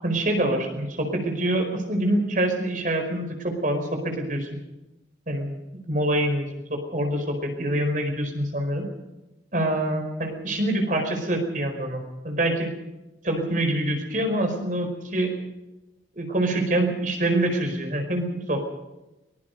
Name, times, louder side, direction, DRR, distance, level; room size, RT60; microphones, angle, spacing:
voice 1, 0.0-4.5 5.3-5.5 5.9-8.9 9.5-12.7 13.2-15.4 16.1-18.6, right 1 dB, 45° right, 5 dB, 4.8 m, -25 dB
23.5 x 21.5 x 5.3 m, 1.0 s
head